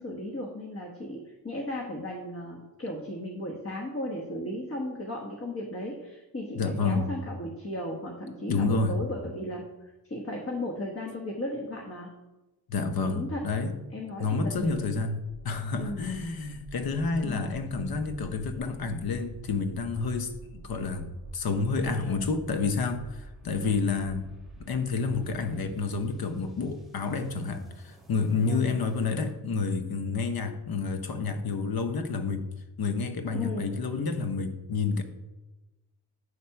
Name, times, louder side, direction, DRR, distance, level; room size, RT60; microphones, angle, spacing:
voice 1, 0.0-9.6 10.0-12.1 13.1-13.4 13.9-14.8 15.8-16.1 17.2-17.5 22.1-22.2 23.4-23.8 28.5-28.7 33.3-33.7, left 1 dB, 35° left, -1 dB, 1.3 m, -35 dB
voice 2, 6.5-7.1 8.5-8.9 12.7-13.7 14.2-15.2 15.4-24.3 24.6-32.5 32.8-35.0, left 4 dB, 70° left, 8 dB, 1.0 m, -29 dB
sound 1, 15.1-29.3, right 2 dB, ahead, 1.7 m, -49 dB
8.4 x 4.2 x 5.7 m, 1.1 s
cardioid pair, 95°, 38 cm